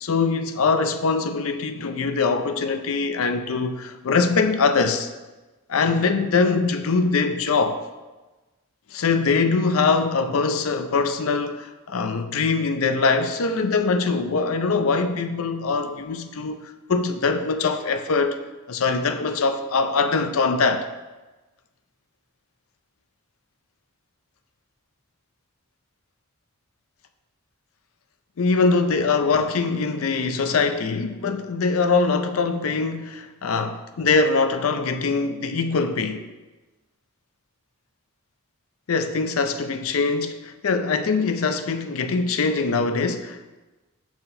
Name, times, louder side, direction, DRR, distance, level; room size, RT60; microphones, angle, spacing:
voice 1, 0.0-5.1 5.7-7.8 8.9-16.6 16.9-18.4 18.7-20.8 28.4-36.3 38.9-43.5, left 4 dB, 80° left, 0.5 m, -22 dB
5.7 x 4.4 x 5.4 m
head